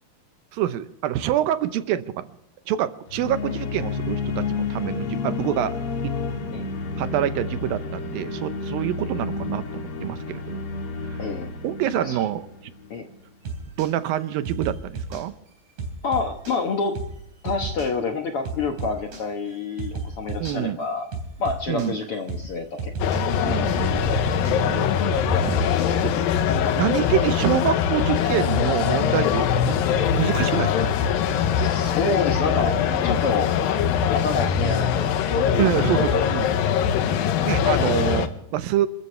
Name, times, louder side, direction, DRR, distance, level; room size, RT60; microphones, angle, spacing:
voice 1, 0.5-2.3 2.7-5.8 6.0-6.1 7.0-10.6 11.1-11.2 11.6-12.7 13.8-15.3 20.4-20.8 21.7-22.0 23.4-23.7 24.6-24.9 25.4-25.6 26.0-26.3 26.8-29.8 30.1-30.7 35.6-36.7 37.0-37.2 37.4-38.9, right 12 dB, 85° right, 11 dB, 2.7 m, -26 dB
sound 1, 3.1-13.1, left 4 dB, 45° left, 2.3 m, -30 dB
voice 2, 11.2-11.5 11.9-12.2 12.9-13.1 16.0-17.0 17.4-21.1 21.4-23.2 23.5-23.7 31.7-33.5 34.1-35.6, left 4 dB, 60° left, 4 dB, 1.5 m, -28 dB
sound 2, 13.4-13.9 14.4-15.2 15.8-16.6 16.9-17.2 17.4-17.9 18.4-19.2 19.8-20.6 21.1-21.9 22.3-22.5 22.8-23.2 23.8-26.0, right 4 dB, 60° right, 4.9 m, -33 dB
sound 3, 23.0-38.3, left 8 dB, 85° left, 2.8 m, -22 dB
27.5 x 14.0 x 3.3 m, 0.79 s
omnidirectional pair, 4.1 m